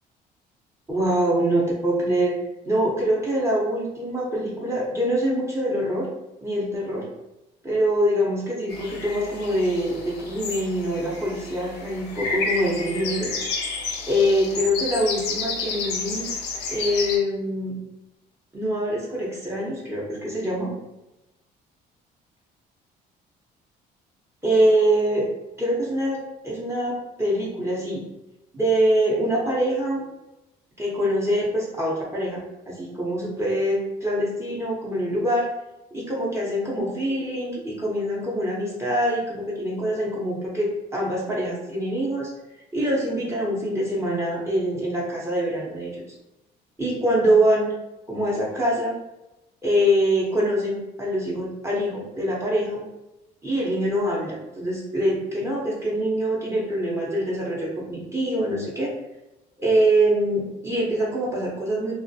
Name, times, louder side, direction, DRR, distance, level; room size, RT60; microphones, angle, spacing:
voice 1, 0.9-2.4 2.7-6.1 6.4-7.0 7.6-13.3 14.1-16.3 16.7-17.7 18.5-20.7 24.4-25.3 25.6-28.0 28.5-30.0 30.8-35.4 35.9-42.3 42.7-46.0 46.8-47.7 48.1-48.9 49.6-52.8 53.4-58.9 59.6-61.9, equal, 15° right, -5 dB, 0.6 m, -24 dB
sound 1, 8.7-17.2, left 4 dB, 85° left, 0.5 m, -31 dB
2.3 x 2.0 x 2.6 m, 0.94 s
cardioid pair, 110°, 17 cm